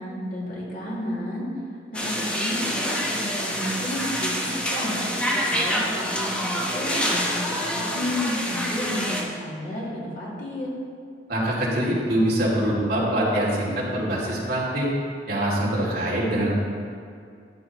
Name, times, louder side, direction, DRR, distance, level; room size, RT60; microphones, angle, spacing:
voice 1, 0.0-1.5 1.9-5.0 5.3-10.7, left 1 dB, 50° left, -6 dB, 2.5 m, -32 dB
sound 1, 1.9-9.2, equal, 5° left, 1.1 m, -27 dB
voice 2, 11.3-14.9 15.3-16.5, right 1 dB, 60° right, -6 dB, 2.7 m, -24 dB
13.0 x 8.7 x 3.1 m, 2.3 s
head